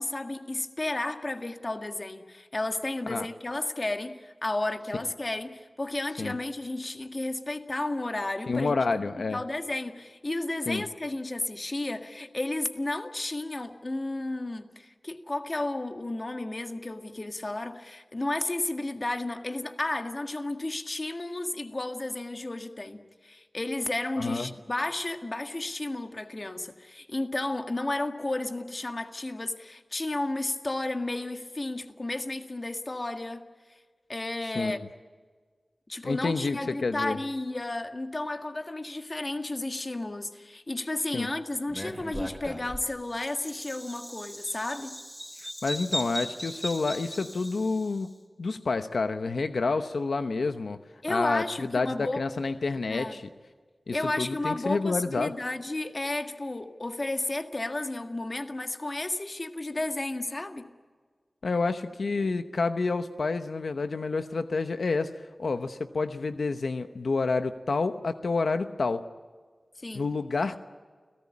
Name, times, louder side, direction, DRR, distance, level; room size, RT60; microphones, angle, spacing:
voice 1, 0.0-8.7 9.2-33.4 34.1-34.8 35.9-45.0 51.0-52.2 52.9-53.2 53.9-60.7 69.8-70.1, left 2 dB, 35° left, 6 dB, 1.7 m, -32 dB
voice 2, 8.5-9.4 10.7-10.8 24.2-24.5 34.5-34.9 36.0-37.2 41.1-41.3 45.4-48.1 48.4-50.8 51.1-53.2 53.9-55.4 61.4-65.1 65.4-69.1 69.9-70.6, left 3 dB, 90° left, 9 dB, 1.0 m, -29 dB
Bird vocalization bird call bird song, 41.7-48.0, equal, 5° left, 4.5 m, -38 dB
29.0 x 18.0 x 8.6 m, 1.6 s
wide cardioid pair, 90°, 0 cm